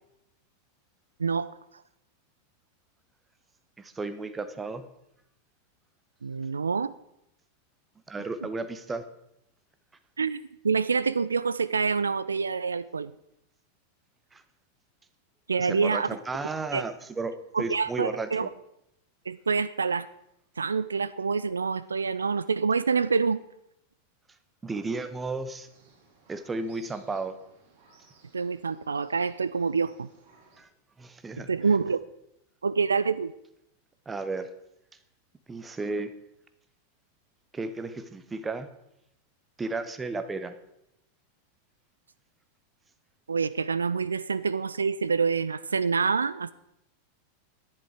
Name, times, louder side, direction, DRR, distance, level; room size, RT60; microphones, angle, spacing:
voice 1, 1.2-1.6 6.2-6.9 10.2-10.4 10.6-13.1 15.5-16.1 16.7-16.8 17.5-18.5 19.3-20.1 20.6-23.4 28.3-30.1 31.4-32.0 32.6-33.3 43.3-46.5, right 5 dB, 75° right, 17 dB, 0.3 m, -26 dB
voice 2, 3.8-4.8 8.1-9.0 14.3-14.4 15.6-18.5 24.6-25.7 26.3-27.4 30.6-30.7 31.0-31.5 34.1-34.5 35.5-36.2 37.5-38.7 39.6-40.6, right 3 dB, 15° right, 11 dB, 0.9 m, -33 dB
sound 1, 25.5-30.6, right 3 dB, 50° right, 3.2 m, -60 dB
11.0 x 10.5 x 4.8 m, 0.82 s
figure-of-eight pair, 90°, 0 cm